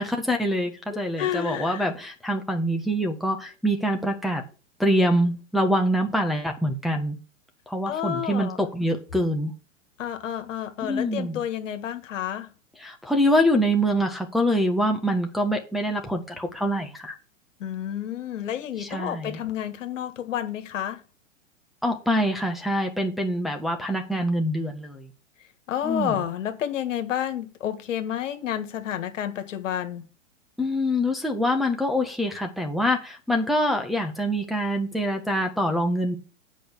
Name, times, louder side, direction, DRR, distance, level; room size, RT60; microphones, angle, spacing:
voice 1, 0.0-4.4 4.8-7.2 7.7-9.5 10.8-11.4 12.8-17.1 18.8-19.4 21.8-25.1 25.8-26.1 30.6-36.2, equal, ahead, 1 dB, 1.5 m, -25 dB
voice 2, 1.2-1.9 7.9-8.6 10.0-12.5 17.6-21.0 25.7-30.1, left 10 dB, 70° left, 8 dB, 1.9 m, -30 dB
8.7 x 5.3 x 6.7 m, 0.34 s
hypercardioid pair, 115°, 39 cm